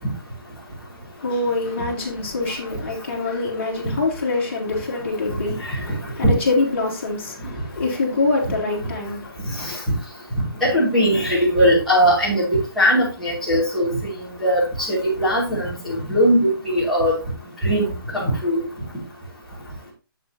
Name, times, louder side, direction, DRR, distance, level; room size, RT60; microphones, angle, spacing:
voice 1, 1.2-9.8, left 3 dB, 35° left, 3.2 m, -25 dB
voice 2, 10.6-12.4 12.8-14.1 14.4-17.1 17.6-18.6, equal, ahead, 2.4 m, -19 dB
8.0 x 7.8 x 2.8 m
hypercardioid pair, 180°, 12 cm